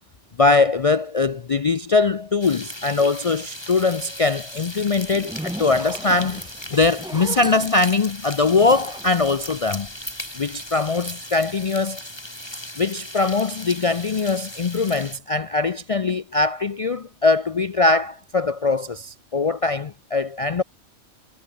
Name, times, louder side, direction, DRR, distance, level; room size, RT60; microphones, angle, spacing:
voice 1, 0.4-9.9 10.4-12.0 12.8-20.6, left 3 dB, 45° left, 0.5 m, -21 dB
sound 1, 2.4-15.2, left 1 dB, 20° left, 5.3 m, -37 dB
Zipper (clothing), 5.0-10.3, right 1 dB, 5° right, 0.7 m, -37 dB
omnidirectional pair, 1.2 m